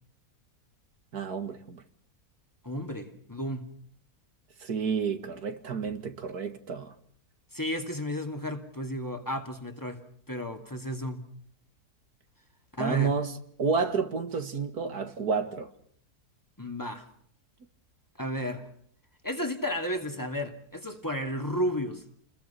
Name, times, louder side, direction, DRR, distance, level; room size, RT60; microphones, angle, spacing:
voice 1, 1.1-1.8 4.6-6.9 12.8-13.3 13.6-15.7, right 5 dB, 80° right, 2.5 m, -30 dB
voice 2, 2.6-3.7 7.5-10.0 10.3-11.2 12.7-13.2 16.6-17.1 18.2-18.7 19.2-22.0, equal, 10° left, 2.7 m, -33 dB
30.0 x 21.5 x 5.8 m
omnidirectional pair, 1.6 m